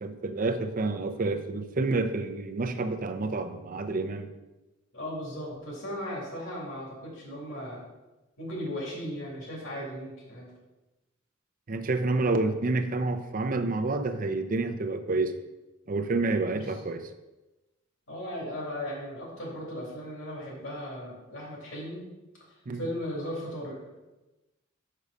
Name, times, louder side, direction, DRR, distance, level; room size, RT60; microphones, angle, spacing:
voice 1, 0.0-4.3 11.7-15.3 15.9-17.1 22.7-22.8, right 3 dB, 45° right, 8 dB, 0.6 m, -29 dB
voice 2, 4.9-7.8 8.4-10.5 16.5-16.8 18.1-22.0 22.7-23.8, equal, 70° left, -4 dB, 2.9 m, -37 dB
6.3 x 5.5 x 5.0 m, 1.1 s
head